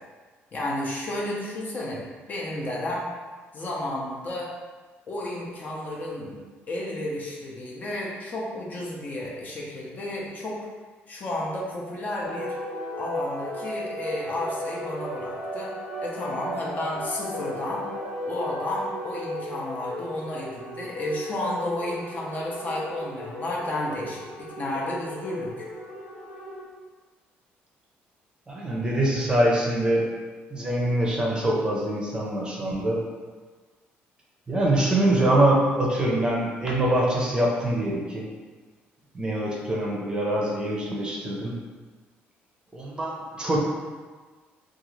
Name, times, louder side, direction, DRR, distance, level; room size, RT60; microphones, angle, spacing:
voice 1, 0.5-3.1 3.5-4.5 5.1-6.4 6.7-10.6 11.1-12.6 13.0-15.7 16.0-17.8 18.3-25.7, left 1 dB, 40° left, -4 dB, 0.6 m, -32 dB
sound 1, 12.2-26.6, left 1 dB, 90° left, 1.0 m, -36 dB
voice 2, 28.5-30.1 30.5-33.0 34.5-38.3 39.1-41.5 42.7-43.6, right 1 dB, 20° right, -3 dB, 0.6 m, -24 dB
2.6 x 2.4 x 3.0 m, 1.4 s
cardioid pair, 105°, 4 cm